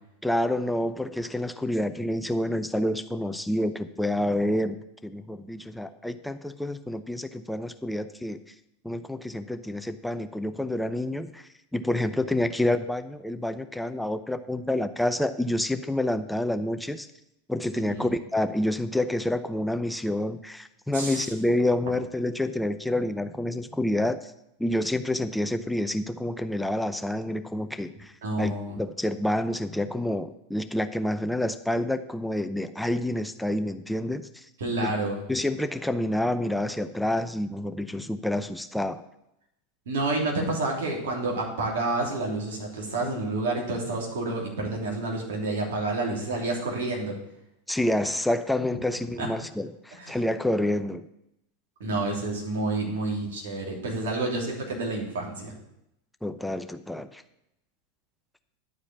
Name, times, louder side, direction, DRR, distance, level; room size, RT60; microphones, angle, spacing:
voice 1, 0.2-8.4 8.8-17.1 17.5-24.3 24.6-34.5 34.8-34.9 35.3-39.0 47.7-51.0 56.2-57.2, left 1 dB, 5° left, 10 dB, 0.6 m, -28 dB
voice 2, 17.7-18.1 20.9-21.3 28.2-28.8 34.6-35.2 39.9-47.2 49.2-49.3 50.0-50.2 51.8-55.5, right 2 dB, 70° right, 0 dB, 3.0 m, -29 dB
10.5 x 4.9 x 8.2 m, 0.83 s
hypercardioid pair, 90°, 0 cm